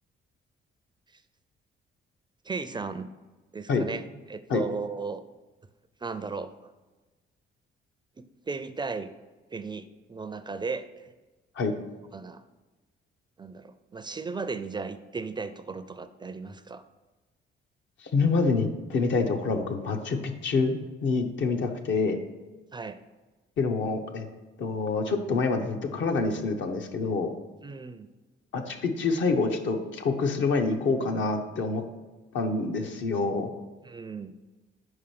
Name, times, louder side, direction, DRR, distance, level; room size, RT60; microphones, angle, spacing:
voice 1, 2.4-3.1 3.5-4.0 4.3-5.2 6.0-6.5 8.2-9.1 9.5-11.1 12.1-12.4 13.4-16.8 22.7-23.0 27.6-28.1 33.8-34.3, right 4 dB, 20° right, 11 dB, 0.4 m, -36 dB
voice 2, 18.0-22.2 23.6-24.3 24.6-27.3 28.5-31.8 32.3-33.5, left 4 dB, 70° left, 4 dB, 0.9 m, -27 dB
5.5 x 4.9 x 5.9 m, 1.2 s
cardioid pair, 90°, 20 cm